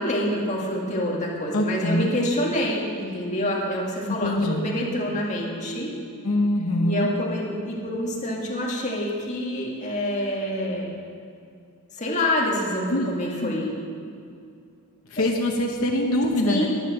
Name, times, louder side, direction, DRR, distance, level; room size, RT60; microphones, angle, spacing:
voice 1, 0.0-5.9 6.8-10.9 11.9-13.8 15.2-15.3 16.4-16.7, left 1 dB, 35° left, -3 dB, 2.0 m, -27 dB
voice 2, 1.5-2.1 4.2-4.7 6.2-7.1 12.9-13.1 13.4-13.6 15.1-16.7, left 1 dB, 65° left, 0 dB, 1.0 m, -23 dB
11.5 x 8.7 x 6.6 m, 2.4 s
head